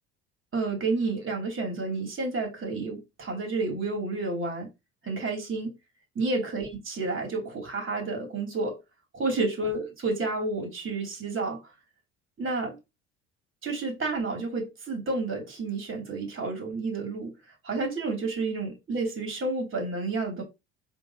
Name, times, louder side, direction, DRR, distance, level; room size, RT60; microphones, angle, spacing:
voice 1, 0.5-4.7 5.0-5.7 6.1-8.8 9.1-11.6 12.4-12.8 13.6-17.3 17.6-20.4, right 3 dB, 35° right, 2.8 m, -30 dB
4.7 x 3.5 x 2.8 m
hypercardioid pair, 65°, 34 cm